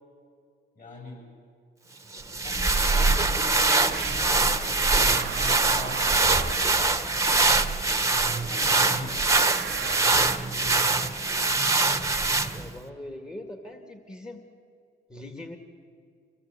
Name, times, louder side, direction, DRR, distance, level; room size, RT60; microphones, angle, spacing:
voice 1, 0.7-1.3 2.4-2.6 3.0-6.5 7.4-7.8 8.3-9.2 9.7-11.2, left 3 dB, 40° left, 2 dB, 7.7 m, -43 dB
sound 1, 2.1-12.8, right 3 dB, 15° right, 1.2 m, -23 dB
sound 2, 3.9-4.3 5.0-6.7 7.3-7.7 9.4-10.5, right 10 dB, 70° right, 0.9 m, -36 dB
voice 2, 12.5-14.4 15.1-15.6, left 1 dB, 20° left, 5 dB, 2.1 m, -41 dB
25.5 x 17.5 x 8.4 m, 2.4 s
cardioid pair, 90°, 20 cm